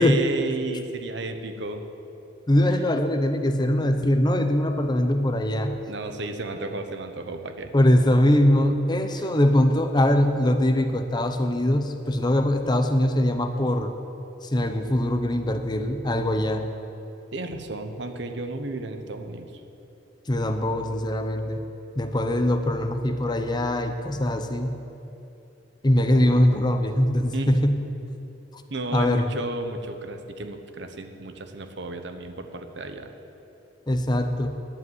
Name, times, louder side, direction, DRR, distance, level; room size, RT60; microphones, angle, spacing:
voice 1, 0.0-1.8 5.9-7.7 9.2-9.3 17.3-19.5 26.0-26.4 27.3-27.6 28.7-33.1, right 2 dB, 65° right, 6 dB, 1.0 m, -33 dB
voice 2, 2.5-5.8 7.7-13.9 14.4-16.7 20.3-21.6 22.0-24.8 25.8-27.8 28.9-29.3 33.9-34.6, left 1 dB, 20° left, 7 dB, 0.6 m, -22 dB
11.0 x 8.0 x 9.5 m, 3.0 s
head